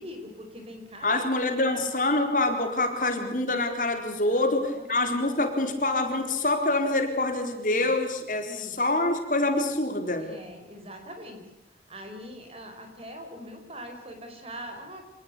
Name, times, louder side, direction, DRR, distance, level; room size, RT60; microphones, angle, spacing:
voice 1, 0.0-1.8 4.3-4.9 7.7-7.9 8.4-8.7 10.2-11.4 11.9-15.0, equal, 35° right, 5 dB, 5.4 m, -42 dB
voice 2, 1.0-10.2, left 2 dB, 45° left, 5 dB, 4.2 m, -26 dB
27.5 x 19.5 x 8.7 m, 0.85 s
head